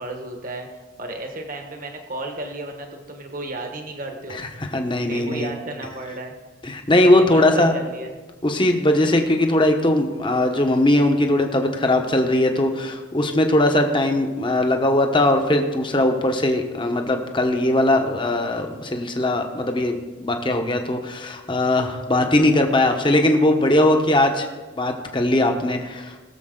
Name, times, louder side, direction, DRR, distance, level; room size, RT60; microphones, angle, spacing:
voice 1, 0.0-4.4 5.0-6.3 7.0-8.1, right 2 dB, 45° right, 3 dB, 1.3 m, -33 dB
voice 2, 4.7-5.5 6.7-7.7 8.4-24.5 24.8-26.1, left 1 dB, 25° left, 4 dB, 1.1 m, -20 dB
21.5 x 7.2 x 3.9 m, 1.3 s
head